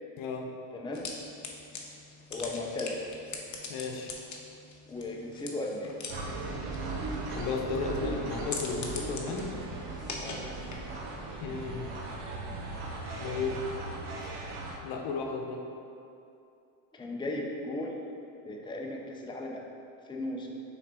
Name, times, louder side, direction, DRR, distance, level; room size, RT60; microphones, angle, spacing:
voice 1, 0.2-0.5 3.7-4.1 7.3-9.5 11.4-11.9 13.2-13.6 14.2-14.3 14.8-15.6, left 4 dB, 70° left, 2 dB, 0.9 m, -34 dB
voice 2, 0.7-1.1 2.3-3.0 4.9-5.9 10.2-10.4 16.9-18.0 18.4-19.7 20.0-20.5, left 2 dB, 10° left, -1 dB, 0.6 m, -36 dB
sound 1, 0.9-11.0, left 4 dB, 35° left, 0.9 m, -43 dB
sound 2, 6.1-14.8, right 3 dB, 75° right, 1.0 m, -38 dB
5.9 x 4.1 x 4.3 m, 2.7 s
supercardioid pair, 85°, 50 cm